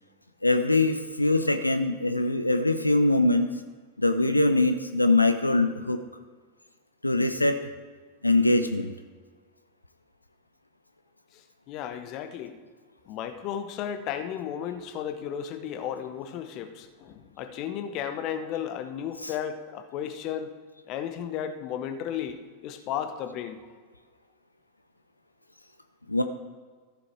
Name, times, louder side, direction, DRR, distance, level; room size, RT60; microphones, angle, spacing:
voice 1, 0.4-3.5 4.0-6.0 7.0-7.6 8.2-8.9 19.2-19.3 26.1-26.2, left 2 dB, 85° left, 9 dB, 0.5 m, -23 dB
voice 2, 11.3-12.6 13.1-20.5 20.9-23.6, left 9 dB, 40° left, 8 dB, 1.0 m, -34 dB
14.0 x 6.8 x 4.5 m, 1.5 s
figure-of-eight pair, 90°, 0 cm